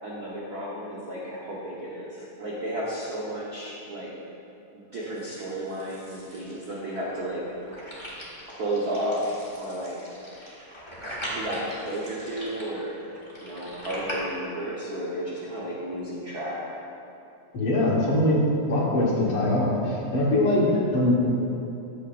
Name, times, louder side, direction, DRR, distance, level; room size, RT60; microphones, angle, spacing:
voice 1, 0.0-4.1 4.7-7.4 8.5-10.0 10.3-10.6 11.3-13.0 13.4-16.6 20.5-20.8, right 1 dB, 65° right, -6 dB, 0.9 m, -33 dB
sound 1, 5.2-14.2, equal, 15° left, 1.1 m, -40 dB
voice 2, 17.5-18.4 18.7-21.1, left 1 dB, 55° left, -5 dB, 2.1 m, -22 dB
14.0 x 8.8 x 2.5 m, 2.8 s
omnidirectional pair, 3.4 m